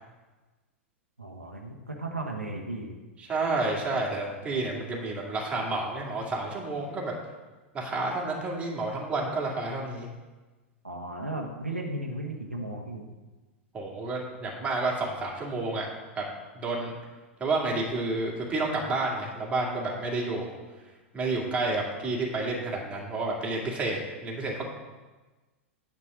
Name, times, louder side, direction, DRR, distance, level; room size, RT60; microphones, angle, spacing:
voice 1, 1.2-2.9 10.8-13.0, right 2 dB, 85° right, 0 dB, 1.2 m, -35 dB
voice 2, 3.2-7.1 7.7-10.1 13.7-15.9 16.2-16.3 16.5-17.0 17.4-20.6 21.1-24.7, right 2 dB, 15° right, -3 dB, 2.2 m, -30 dB
9.7 x 4.4 x 7.3 m, 1.2 s
figure-of-eight pair, 95°, 7 cm